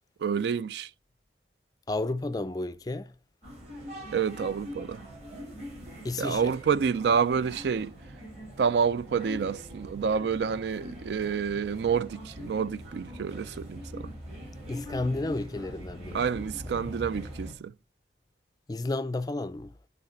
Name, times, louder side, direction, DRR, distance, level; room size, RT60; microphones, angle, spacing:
voice 1, 0.2-0.9 4.1-5.0 6.2-7.9 8.6-14.1 16.1-17.7, right 6 dB, 75° right, 0.4 m, -28 dB
voice 2, 1.9-3.1 6.0-6.5 14.7-16.3 16.8-16.9 18.7-19.7, left 2 dB, 20° left, 0.3 m, -32 dB
sound 1, 3.4-17.5, equal, 40° right, 4.1 m, -43 dB
8.9 x 4.2 x 4.2 m
head